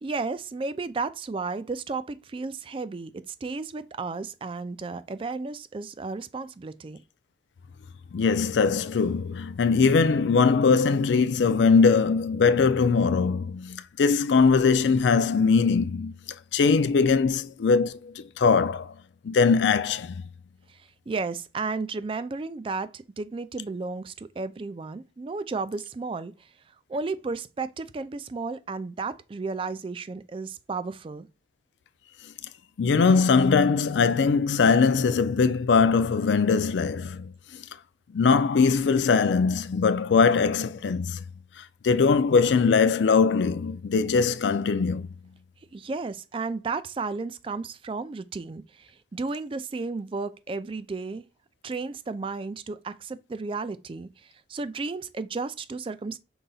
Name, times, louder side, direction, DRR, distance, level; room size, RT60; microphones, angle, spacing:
voice 1, 0.0-7.0 21.1-26.3 26.9-31.3 45.7-51.2 51.6-54.1 54.5-56.2, right 4 dB, 30° right, 0.3 m, -33 dB
voice 2, 8.1-16.1 16.5-18.9 19.2-20.2 32.8-37.3 38.1-41.2 41.8-45.1, left 5 dB, 85° left, 0.4 m, -21 dB
5.4 x 3.9 x 2.3 m
head